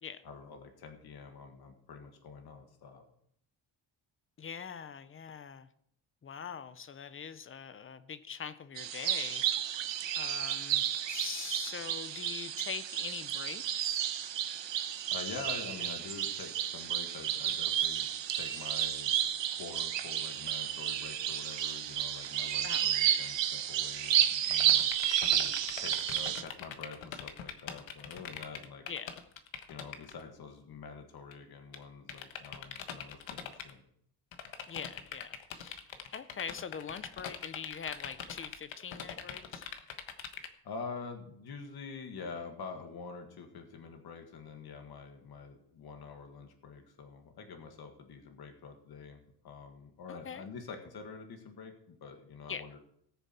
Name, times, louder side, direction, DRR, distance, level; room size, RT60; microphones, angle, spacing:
voice 1, 0.2-3.0 15.1-24.9 25.3-28.9 29.7-33.8 40.6-52.8, left 5 dB, 50° left, 5 dB, 1.7 m, -46 dB
voice 2, 4.4-5.7 6.2-9.4 10.1-14.1 22.6-22.9 28.9-29.2 34.7-35.8 36.1-39.7 50.1-50.5 52.5-52.6, left 7 dB, 30° left, 14 dB, 0.6 m, -43 dB
sound 1, 8.8-26.4, right 10 dB, 65° right, 1.1 m, -32 dB
sound 2, 24.5-30.2 31.3-31.4 31.7-31.8 32.1-33.7 34.3-40.5, left 8 dB, 75° left, 1.3 m, -42 dB
18.5 x 6.9 x 4.3 m, 0.68 s
cardioid pair, 155°, 47 cm